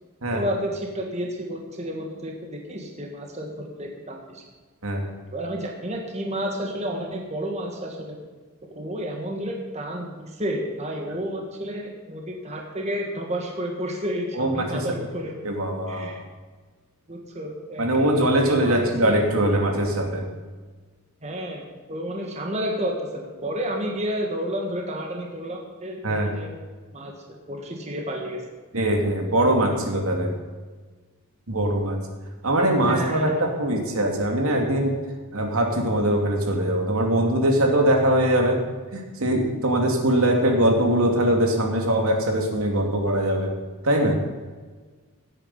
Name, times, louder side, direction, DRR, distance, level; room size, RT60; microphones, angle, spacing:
voice 1, 0.3-4.4 5.3-8.2 8.6-15.3 15.9-16.2 17.1-19.2 21.2-26.5 26.9-27.1 27.5-28.4 32.9-33.4, equal, 30° right, 1 dB, 1.7 m, -31 dB
voice 2, 14.3-14.9 15.4-16.1 17.8-20.3 26.0-26.3 28.7-30.3 31.5-32.0 32.4-34.9 35.3-38.6 38.9-43.5 43.8-44.2, right 1 dB, 80° right, 2 dB, 2.6 m, -22 dB
17.0 x 8.7 x 5.5 m, 1.4 s
head